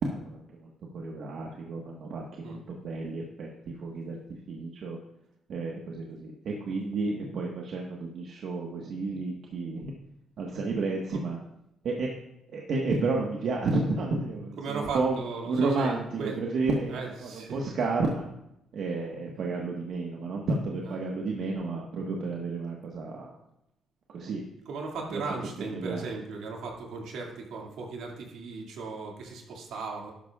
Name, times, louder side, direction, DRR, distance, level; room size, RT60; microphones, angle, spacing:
voice 1, 0.0-4.2 4.5-5.0 5.5-9.9 10.4-11.4 11.8-12.1 12.5-15.2 15.5-18.3 18.7-23.3 24.1-24.4 25.1-25.2 25.7-26.0, right 3 dB, 65° right, -1 dB, 1.4 m, -31 dB
voice 2, 14.6-16.4 16.9-17.6 20.8-21.0 24.7-30.1, right 4 dB, 80° right, 0 dB, 2.3 m, -37 dB
12.5 x 11.0 x 2.4 m, 0.82 s
cardioid pair, 90°, 0 cm